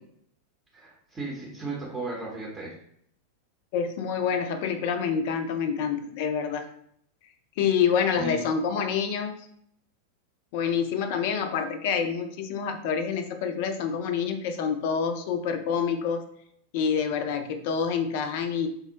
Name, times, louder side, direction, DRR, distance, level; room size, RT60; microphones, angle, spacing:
voice 1, 0.7-2.7 8.2-8.4, right 2 dB, 15° right, -4 dB, 0.8 m, -35 dB
voice 2, 3.7-6.7 7.6-9.4 10.5-16.2 16.7-18.7, left 6 dB, 50° left, 7 dB, 0.4 m, -27 dB
3.4 x 2.1 x 2.7 m, 0.69 s
figure-of-eight pair, 90°, 0 cm